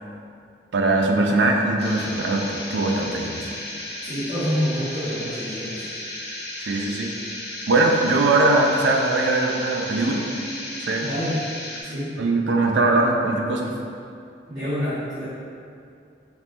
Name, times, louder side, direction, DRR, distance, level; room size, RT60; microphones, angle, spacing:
voice 1, 0.7-3.5 6.6-7.1 7.7-10.3 10.8-11.1 11.8-11.9 12.2-13.7, right 2 dB, 90° right, 1 dB, 0.5 m, -21 dB
sound 1, 1.8-11.8, left 1 dB, 60° left, 0.8 m, -34 dB
voice 2, 4.0-5.8 11.0-11.4 11.8-12.2 14.5-15.2, equal, 55° right, -18 dB, 1.4 m, -27 dB
5.2 x 2.9 x 2.6 m, 2.4 s
head